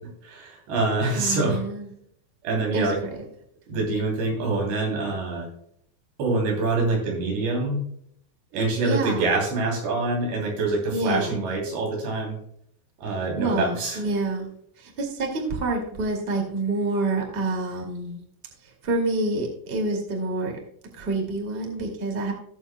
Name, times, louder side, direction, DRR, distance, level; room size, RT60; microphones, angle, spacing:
voice 1, 0.2-1.6 2.4-3.0 3.7-5.5 6.2-7.8 8.5-12.4 13.0-14.0, right 3 dB, 90° right, 0 dB, 5.1 m, -25 dB
voice 2, 1.1-1.9 2.7-3.1 8.8-9.3 10.9-11.4 13.4-14.5 14.8-18.2 18.6-20.5 21.0-22.3, right 2 dB, 20° right, 1 dB, 1.5 m, -27 dB
17.5 x 7.4 x 2.2 m, 0.68 s
omnidirectional pair, 4.8 m